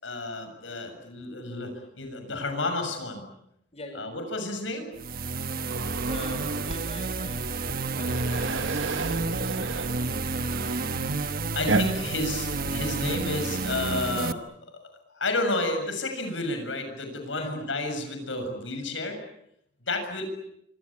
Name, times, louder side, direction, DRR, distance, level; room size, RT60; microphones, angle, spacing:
voice 1, 0.0-3.3 3.9-4.9 11.6-14.7 15.1-19.2 19.9-20.2, left 2 dB, 85° left, 6 dB, 6.9 m, -31 dB
voice 2, 3.7-4.0 6.0-9.0 9.9-10.3 10.6-10.9 11.8-12.2 17.3-17.5, left 2 dB, 35° left, 6 dB, 5.5 m, -43 dB
sound 1, 5.0-14.3, right 3 dB, 55° right, 1.2 m, -30 dB
sound 2, 5.7-13.3, right 3 dB, 85° right, 1.7 m, -34 dB
26.5 x 25.0 x 8.7 m, 0.78 s
head